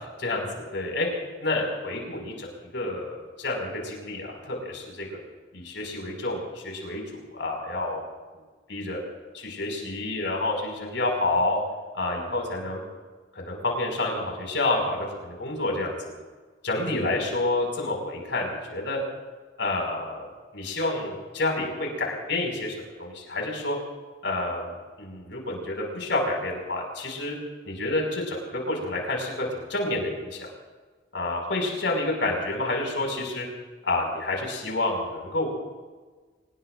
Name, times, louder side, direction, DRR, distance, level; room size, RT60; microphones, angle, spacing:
voice 1, 0.2-1.1 1.4-5.1 5.5-8.0 8.7-9.0 9.3-11.6 11.9-12.8 13.3-16.1 16.6-19.0 19.6-20.3 20.5-23.8 24.2-24.7 25.0-27.4 27.6-30.3 31.1-33.5 33.8-35.5, left 2 dB, 75° left, 1 dB, 5.9 m, -29 dB
25.5 x 20.5 x 2.6 m, 1.4 s
head